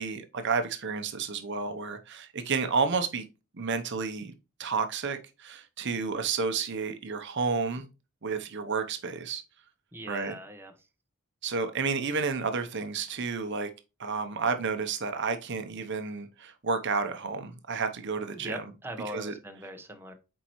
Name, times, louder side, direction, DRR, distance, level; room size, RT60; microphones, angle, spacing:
voice 1, 0.0-3.2 3.5-4.3 4.6-7.9 8.2-9.4 10.1-10.3 11.4-13.7 14.0-18.6 19.1-19.3, right 4 dB, 55° right, 0.8 m, -31 dB
voice 2, 9.9-10.7 18.3-20.1, right 1 dB, 10° right, 1.0 m, -40 dB
8.3 x 4.6 x 3.0 m
head